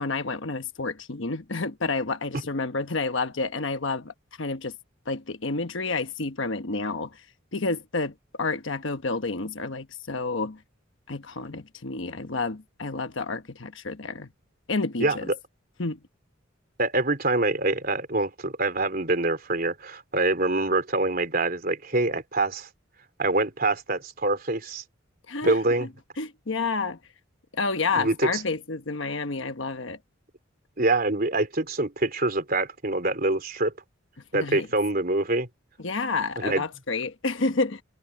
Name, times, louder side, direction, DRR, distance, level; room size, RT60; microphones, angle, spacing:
voice 1, 0.0-4.7 5.1-7.2 7.5-10.6 11.1-14.3 14.7-15.3 15.8-16.0 25.3-25.6 26.2-27.0 27.5-30.0 34.3-34.7 35.8-37.8, left 3 dB, 65° left, 1.2 m, -29 dB
voice 2, 15.0-15.3 16.8-22.7 23.2-24.8 25.4-25.9 28.0-28.4 30.8-33.7 34.3-35.5 36.4-36.6, right 2 dB, 45° right, 3.7 m, -25 dB
head